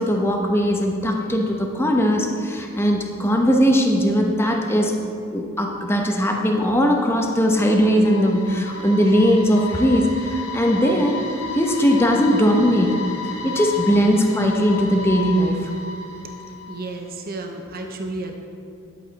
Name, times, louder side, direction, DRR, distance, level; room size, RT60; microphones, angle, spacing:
voice 1, 0.0-4.9 5.3-11.2 11.5-13.0 13.4-15.6, equal, 10° left, 1 dB, 0.9 m, -19 dB
sound 1, 7.0-17.0, left 4 dB, 80° left, 1.2 m, -34 dB
voice 2, 16.7-18.4, right 2 dB, 40° right, 3 dB, 0.8 m, -32 dB
11.0 x 8.3 x 4.1 m, 2.5 s
head